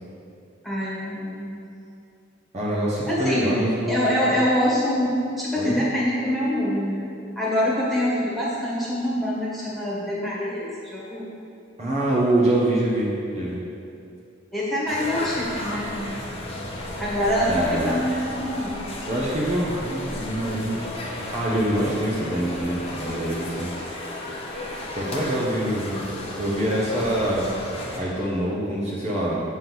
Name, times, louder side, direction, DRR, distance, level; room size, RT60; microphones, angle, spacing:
voice 1, 0.6-1.6 3.0-3.5 3.9-7.1 7.3-11.3 14.5-16.2 17.0-19.5, left 1 dB, ahead, -8 dB, 1.6 m, -25 dB
voice 2, 2.5-4.1 5.6-5.8 11.8-13.6 17.5-18.0 19.1-20.9 21.3-23.7 24.9-26.0 26.3-27.5 28.0-29.4, right 1 dB, 35° right, -6 dB, 0.9 m, -25 dB
sound 1, 14.9-28.0, left 1 dB, 30° left, 1.0 m, -34 dB
7.6 x 3.7 x 5.9 m, 2.6 s
head